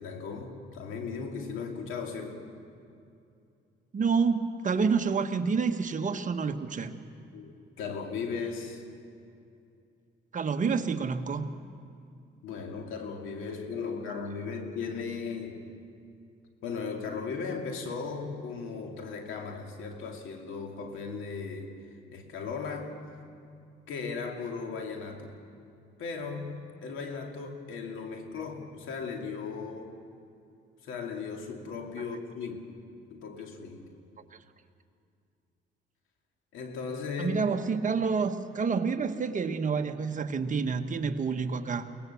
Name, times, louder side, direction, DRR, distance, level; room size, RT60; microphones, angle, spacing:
voice 1, 0.0-2.4 7.3-8.8 12.4-15.7 16.6-21.7 22.1-23.0 23.9-25.4 26.0-30.0 30.8-32.8 33.1-33.9 36.5-37.4, left 5 dB, 90° left, 3 dB, 2.6 m, -37 dB
voice 2, 3.9-6.9 10.3-11.5 37.2-41.9, right 5 dB, 40° right, 7 dB, 1.3 m, -28 dB
23.0 x 19.0 x 7.1 m, 2.5 s
cardioid pair, 90°, 20 cm